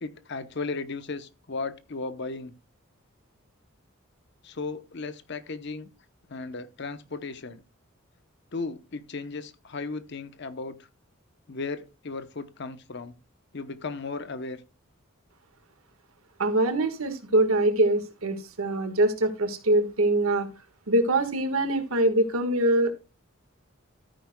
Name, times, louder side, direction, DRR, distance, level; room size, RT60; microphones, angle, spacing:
voice 1, 0.0-2.5 4.4-5.9 6.3-7.6 8.5-10.8 11.5-13.1 13.5-14.6, left 3 dB, 55° left, 0.8 m, -35 dB
voice 2, 16.4-20.5 20.9-22.9, right 1 dB, 85° right, 1.5 m, -23 dB
13.0 x 9.2 x 2.2 m
head